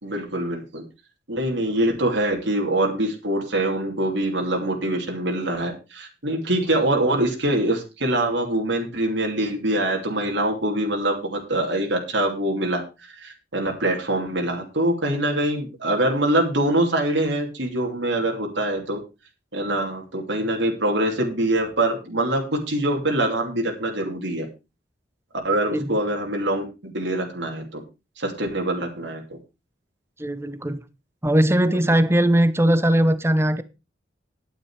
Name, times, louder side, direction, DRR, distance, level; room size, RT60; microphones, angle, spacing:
voice 1, 0.0-0.8 1.3-19.0 19.5-24.5 25.4-26.6 26.9-27.8 28.2-29.4, right 1 dB, 75° right, 3.0 m, -24 dB
voice 2, 30.2-30.8 31.2-33.6, right 1 dB, 15° right, 0.8 m, -19 dB
10.5 x 9.5 x 4.7 m
head